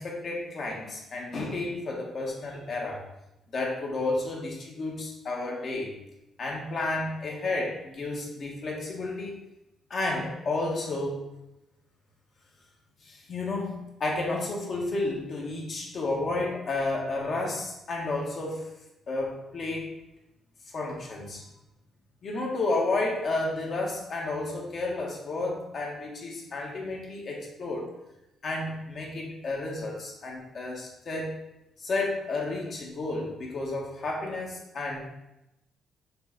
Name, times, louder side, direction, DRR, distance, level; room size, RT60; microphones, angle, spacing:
voice 1, 0.0-3.0 3.5-5.9 6.4-9.3 9.9-11.2 13.0-18.7 19.1-19.9 20.7-21.4 22.2-27.9 28.4-31.4 31.8-35.1, left 2 dB, 50° left, -1 dB, 1.8 m, -31 dB
6.8 x 3.4 x 4.2 m, 0.90 s
cardioid pair, 90°, 0 cm